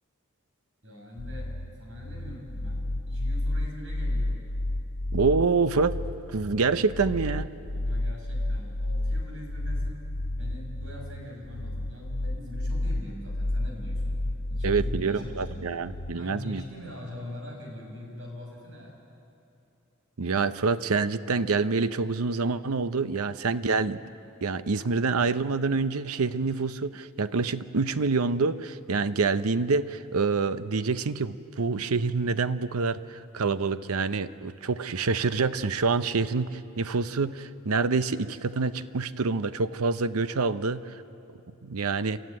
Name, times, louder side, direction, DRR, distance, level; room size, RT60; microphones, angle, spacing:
voice 1, 0.8-1.5 1.7-4.4 7.7-10.0 10.4-14.2 14.5-15.6 16.1-18.9, left 1 dB, 60° right, 0 dB, 5.8 m, -42 dB
sound 1, 1.2-16.2, left 1 dB, 55° left, 1.1 m, -31 dB
voice 2, 5.1-6.0 6.3-7.5 14.6-16.6 20.2-24.0 24.4-41.0 41.6-42.2, right 4 dB, 85° right, 13 dB, 0.7 m, -26 dB
30.0 x 13.0 x 9.6 m, 2.8 s
head